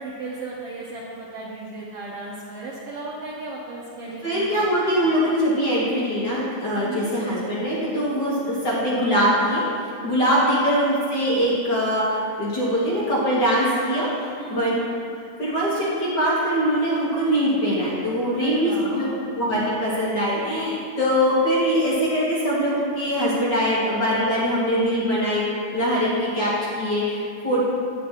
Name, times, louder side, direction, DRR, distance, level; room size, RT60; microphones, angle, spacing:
voice 1, 0.0-4.6 5.0-5.1 6.8-7.1 10.0-10.3 14.4-14.7 18.4-19.2 27.5-27.7, right 3 dB, 70° right, -4 dB, 1.5 m, -35 dB
voice 2, 4.2-9.6 10.0-14.7 15.4-19.1 19.4-25.4 25.7-27.7, equal, 50° left, -7 dB, 1.4 m, -22 dB
9.5 x 8.3 x 2.9 m, 2.4 s
omnidirectional pair, 3.4 m